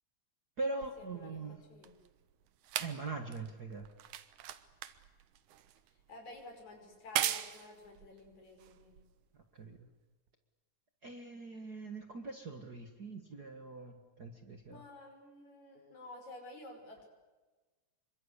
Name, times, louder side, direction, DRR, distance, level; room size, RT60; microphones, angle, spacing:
voice 1, 0.6-1.6 2.8-3.9 9.3-9.9 11.0-14.8, right 3 dB, 40° right, 5 dB, 1.8 m, -42 dB
sound 1, 0.8-9.4 10.3-10.4, right 11 dB, 85° right, 2.6 m, -41 dB
voice 2, 6.1-9.0 14.7-17.1, left 2 dB, 70° left, 3 dB, 6.8 m, -51 dB
27.0 x 24.0 x 8.2 m, 1.3 s
omnidirectional pair, 3.4 m